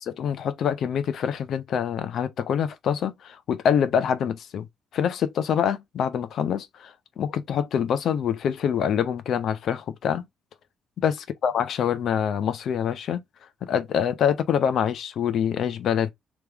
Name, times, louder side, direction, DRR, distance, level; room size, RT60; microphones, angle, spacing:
voice 1, 0.0-4.7 4.9-10.2 11.0-11.1 11.4-13.2 13.6-16.1, left 8 dB, 70° left, 0.7 m, -25 dB
3.4 x 3.1 x 3.5 m
cardioid pair, 90°, 0 cm